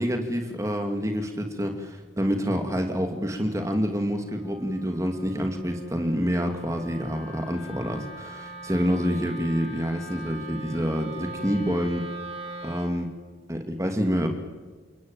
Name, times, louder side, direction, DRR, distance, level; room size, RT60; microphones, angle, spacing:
voice 1, 0.0-12.1 12.6-13.1 13.5-14.3, equal, 15° right, 5 dB, 2.4 m, -27 dB
Wind instrument woodwind instrument, 1.4-13.0, right 2 dB, 30° right, 3.7 m, -42 dB
29.0 x 18.0 x 9.0 m, 1.4 s
head